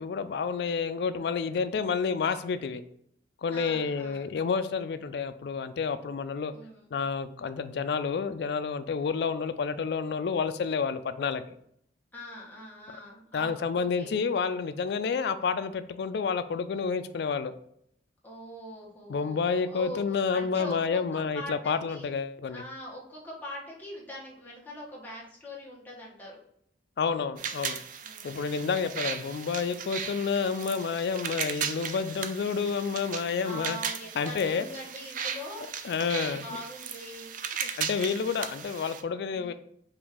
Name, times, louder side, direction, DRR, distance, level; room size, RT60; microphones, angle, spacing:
voice 1, 0.0-2.8 3.4-6.5 6.9-11.6 13.3-17.5 19.1-22.6 27.0-27.8 28.2-33.8 34.2-34.6 35.8-36.5 37.6-39.5, left 5 dB, 65° left, 0.3 m, -29 dB
voice 2, 3.5-4.2 6.5-6.9 12.1-14.1 18.2-22.1 22.5-26.4 28.0-28.4 33.4-35.7 36.1-37.3 39.3-39.5, left 1 dB, 10° left, 1.2 m, -42 dB
sound 1, 27.4-39.0, right 7 dB, 45° right, 0.4 m, -37 dB
4.9 x 2.6 x 3.5 m
head